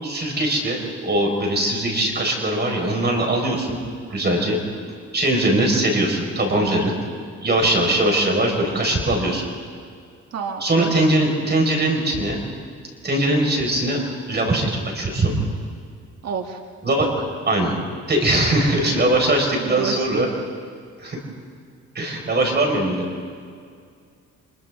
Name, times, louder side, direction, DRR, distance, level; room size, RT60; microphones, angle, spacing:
voice 1, 0.0-3.8 4.1-4.6 5.1-6.9 7.4-9.4 10.6-12.4 13.0-14.0 14.3-15.3 16.8-17.7 18.1-20.3 21.0-21.2 21.9-23.1, right 1 dB, 35° right, 1 dB, 4.9 m, -21 dB
voice 2, 10.3-10.9 16.2-16.6 19.6-20.3, right 6 dB, 55° right, 2 dB, 1.7 m, -29 dB
29.5 x 26.0 x 3.7 m, 2.2 s
cardioid pair, 90°, 30 cm